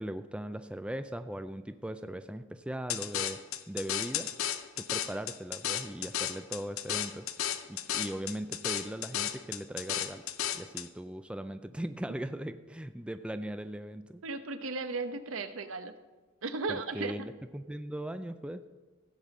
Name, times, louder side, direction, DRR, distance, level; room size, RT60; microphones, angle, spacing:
voice 1, 0.0-3.4 3.7-4.3 4.8-7.3 7.7-14.2 16.7-18.7, right 1 dB, 5° right, 10 dB, 0.4 m, -39 dB
sound 1, 2.9-10.9, left 10 dB, 80° left, 0.7 m, -34 dB
voice 2, 14.2-15.9 16.4-17.3, right 3 dB, 75° right, 10 dB, 0.9 m, -35 dB
15.5 x 5.3 x 7.4 m, 1.3 s
head